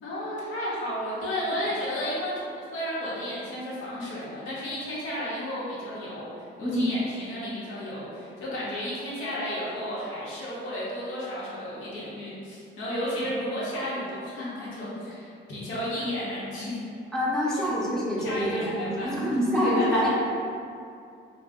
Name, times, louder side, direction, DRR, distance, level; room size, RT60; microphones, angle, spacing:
voice 1, 0.0-16.9 17.5-17.7 18.2-20.1, left 1 dB, 80° left, -7 dB, 0.9 m, -32 dB
voice 2, 17.1-20.1, equal, ahead, -7 dB, 0.6 m, -26 dB
2.5 x 2.1 x 3.5 m, 2.5 s
cardioid pair, 90°, 20 cm